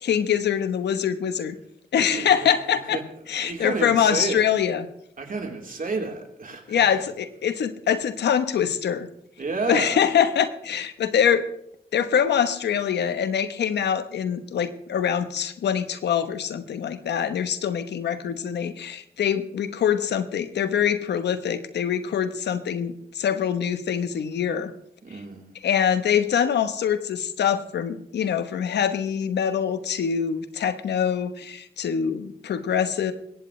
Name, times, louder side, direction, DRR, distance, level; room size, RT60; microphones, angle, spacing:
voice 1, 0.0-1.5 1.9-3.0 3.3-4.9 6.7-9.1 9.7-11.4 11.9-24.7 25.6-33.1, left 8 dB, 85° left, 11 dB, 1.1 m, -24 dB
voice 2, 2.0-3.0 3.3-4.5 5.2-7.1 9.4-10.1 25.0-25.5, right 3 dB, 55° right, 1 dB, 3.9 m, -31 dB
21.0 x 17.0 x 3.3 m, 0.73 s
cardioid pair, 45°, 17 cm